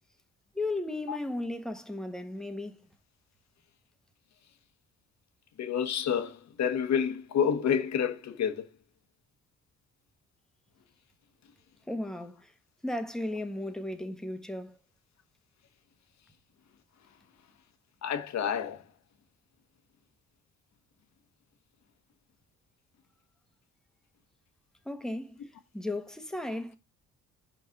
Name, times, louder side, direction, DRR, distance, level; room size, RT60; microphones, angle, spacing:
voice 1, 0.5-2.8 11.9-12.5 12.8-14.8 24.8-25.4 25.7-26.8, left 1 dB, ahead, 1.2 m, -35 dB
voice 2, 5.6-8.7 18.0-18.8, left 8 dB, 65° left, 1.3 m, -29 dB
5.5 x 5.3 x 5.8 m
cardioid pair, 90°, 30 cm